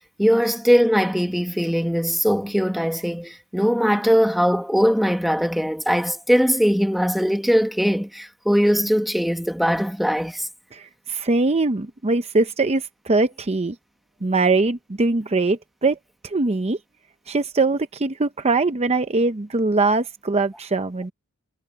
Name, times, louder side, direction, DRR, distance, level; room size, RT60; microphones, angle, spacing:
voice 1, 0.2-10.5, equal, ahead, 1.4 m, -20 dB
voice 2, 10.7-13.8 14.2-16.0 16.2-16.8 17.3-21.1, right 3 dB, 30° right, 0.7 m, -22 dB
head